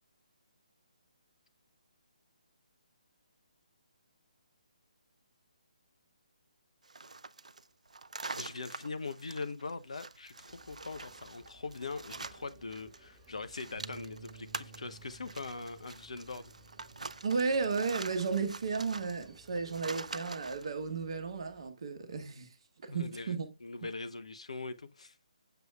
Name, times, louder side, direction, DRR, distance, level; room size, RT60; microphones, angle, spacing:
sound 1, 6.8-13.0 13.2-20.7, right 3 dB, 70° right, 0.4 m, -45 dB
voice 1, 8.4-16.5 22.9-23.3 23.6-25.2, left 3 dB, 60° left, 0.7 m, -42 dB
sound 2, 10.5-21.7, right 1 dB, 10° right, 2.5 m, -61 dB
Bass guitar, 13.8-20.0, right 4 dB, 85° right, 0.9 m, -56 dB
voice 2, 17.2-22.5 22.8-23.5, right 4 dB, 45° right, 1.1 m, -34 dB
6.9 x 6.2 x 2.3 m
figure-of-eight pair, 140°, 4 cm